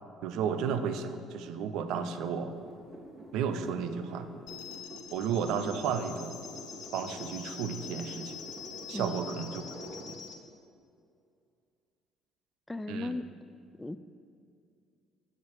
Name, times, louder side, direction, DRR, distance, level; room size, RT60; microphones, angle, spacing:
voice 1, 0.2-2.5 3.3-4.3 5.1-6.4 6.9-8.4 8.9-9.6 10.0-10.2 12.9-13.1, right 7 dB, 65° right, 10 dB, 0.6 m, -33 dB
sound 1, 2.5-10.1, equal, 25° right, 2.0 m, -48 dB
sound 2, 4.5-10.4, left 8 dB, 60° left, 1.1 m, -45 dB
voice 2, 8.9-9.3 12.7-13.2 13.8-14.0, left 2 dB, 10° left, 13 dB, 0.4 m, -36 dB
14.5 x 8.2 x 3.1 m, 2.4 s
hypercardioid pair, 55°, 0 cm